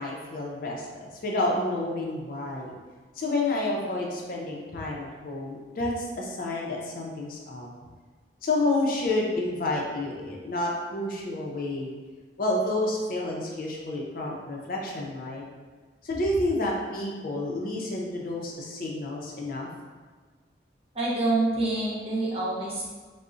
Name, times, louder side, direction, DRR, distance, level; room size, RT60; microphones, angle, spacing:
voice 1, 0.0-2.7 3.2-7.7 8.4-11.9 12.4-15.4 16.0-19.7, left 2 dB, 55° left, -2 dB, 0.5 m, -29 dB
voice 2, 20.9-22.9, right 2 dB, 35° right, -7 dB, 0.7 m, -26 dB
3.7 x 2.0 x 2.4 m, 1.4 s
head